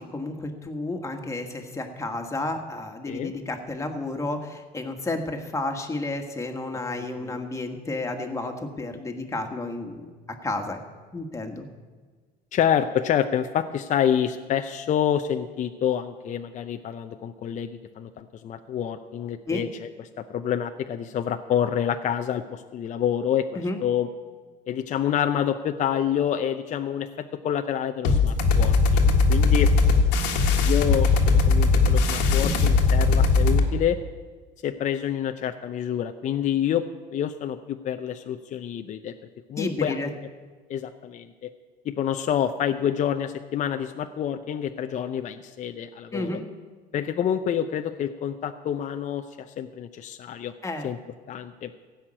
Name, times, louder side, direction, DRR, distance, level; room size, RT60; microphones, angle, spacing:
voice 1, 0.0-10.1 10.4-10.8 11.1-11.7 19.5-19.6 23.5-23.8 39.6-40.1 46.1-46.5 50.6-50.9, left 2 dB, 15° left, 3 dB, 1.6 m, -31 dB
voice 2, 12.5-17.7 18.0-19.9 20.2-24.1 24.7-27.1 27.4-29.7 30.6-34.0 34.6-39.1 39.5-40.0 40.7-41.5 41.8-46.4 46.9-50.5 50.8-51.0 51.3-51.7, left 9 dB, 45° left, 7 dB, 0.6 m, -27 dB
sound 1, 28.0-33.7, left 4 dB, 85° left, 1.6 m, -19 dB
16.0 x 5.9 x 8.9 m, 1.4 s
cardioid pair, 110°, 18 cm